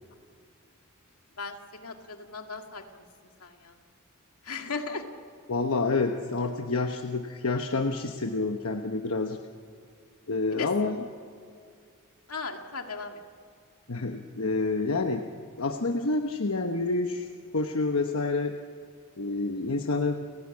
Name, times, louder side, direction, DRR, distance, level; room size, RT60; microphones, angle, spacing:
voice 1, 1.4-3.0 3.4-3.7 4.4-5.0 10.5-10.9 12.3-13.2, left 4 dB, 85° left, 4 dB, 2.2 m, -37 dB
voice 2, 5.5-9.4 10.3-11.0 13.9-15.2 15.6-17.3 17.5-18.5 19.2-20.2, left 3 dB, 65° left, 4 dB, 1.2 m, -28 dB
30.0 x 17.0 x 8.5 m, 2.2 s
head